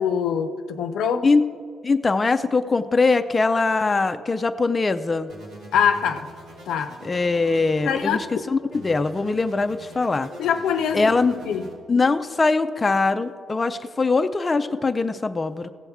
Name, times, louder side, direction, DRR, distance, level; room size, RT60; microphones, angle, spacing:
voice 1, 0.0-1.3 5.7-6.3 6.7-7.0 7.8-8.2 10.4-11.1 11.5-11.7, left 7 dB, 80° left, 8 dB, 0.5 m, -23 dB
voice 2, 1.8-5.3 7.0-10.3 10.9-11.4 11.9-15.7, left 3 dB, 25° left, 8 dB, 0.4 m, -22 dB
sound 1, 5.3-8.3 8.7-11.7, right 1 dB, 85° right, 2.3 m, -44 dB
16.0 x 7.0 x 3.5 m, 2.2 s
cardioid pair, 90°, 0 cm